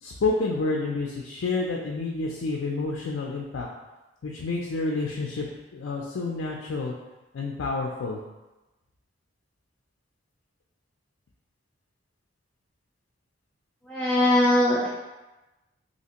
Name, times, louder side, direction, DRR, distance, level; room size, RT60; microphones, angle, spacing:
voice 1, 0.0-3.7 4.2-5.5 5.7-6.9 7.3-8.2, left 3 dB, 70° left, -1 dB, 0.4 m, -29 dB
voice 2, 13.9-14.9, left 1 dB, 5° left, -7 dB, 0.3 m, -21 dB
3.2 x 2.8 x 2.9 m, 1.1 s
head